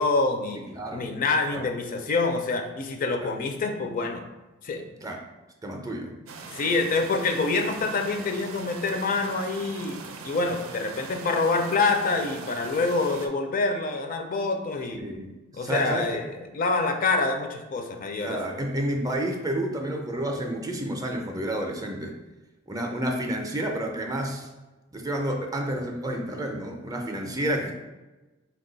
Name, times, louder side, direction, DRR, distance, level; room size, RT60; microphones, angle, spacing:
voice 1, 0.0-0.6 0.9-4.2 4.6-4.8 6.5-10.0 10.2-15.0 15.5-16.2 16.5-18.5, left 3 dB, 45° left, 5 dB, 0.4 m, -26 dB
voice 2, 0.7-1.1 1.5-1.7 3.2-3.3 5.0-5.2 5.6-6.2 14.9-16.2 18.2-22.2 22.7-24.5 24.9-27.7, right 1 dB, 20° right, 2 dB, 0.4 m, -30 dB
sound 1, 6.3-13.3, right 4 dB, 75° right, 0.5 m, -41 dB
4.2 x 2.3 x 3.8 m, 1.1 s
head